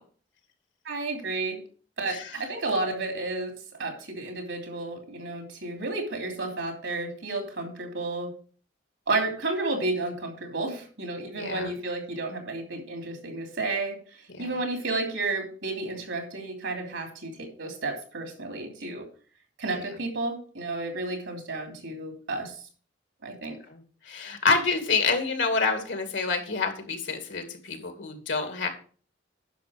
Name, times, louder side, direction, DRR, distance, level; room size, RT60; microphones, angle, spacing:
voice 1, 0.8-1.6 2.0-3.5 3.8-8.3 9.1-14.0 14.4-19.0 19.6-22.6 23.2-23.5, right 2 dB, 90° right, 3 dB, 3.0 m, -31 dB
voice 2, 11.3-11.7 14.3-14.6 19.7-19.8 23.7-23.8 24.1-28.7, left 4 dB, 75° left, 5 dB, 2.3 m, -28 dB
10.5 x 6.2 x 5.0 m, 0.41 s
head